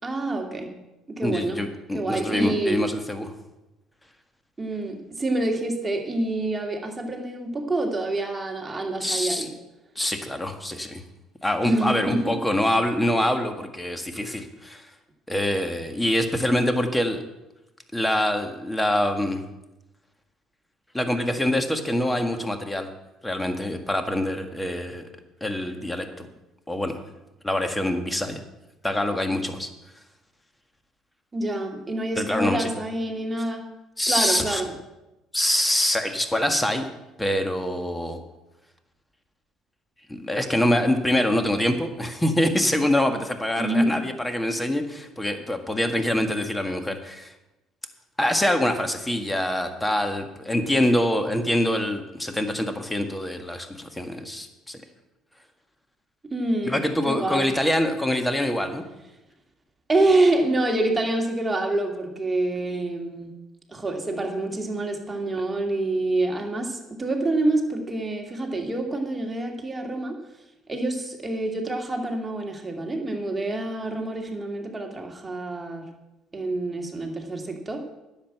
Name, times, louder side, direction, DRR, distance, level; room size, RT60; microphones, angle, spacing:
voice 1, 0.0-0.7 1.1-1.6 1.9-2.8 4.6-9.5 11.6-12.4 31.3-33.6 34.1-34.7 43.6-44.0 56.3-57.5 59.9-63.3 63.7-70.2 70.7-75.9 76.3-77.8, right 2 dB, 20° right, 2 dB, 2.5 m, -27 dB
voice 2, 1.2-3.3 9.0-9.5 9.9-11.0 11.4-14.9 15.3-17.2 17.9-19.4 20.9-22.9 23.2-25.1 25.4-26.3 26.7-27.0 27.4-28.4 28.8-29.7 32.1-32.8 34.0-34.6 35.3-36.9 37.2-38.2 40.1-47.3 48.2-54.8 56.6-58.8, left 1 dB, 10° left, 7 dB, 1.7 m, -25 dB
10.5 x 7.6 x 7.9 m, 0.98 s
hypercardioid pair, 65°, 0 cm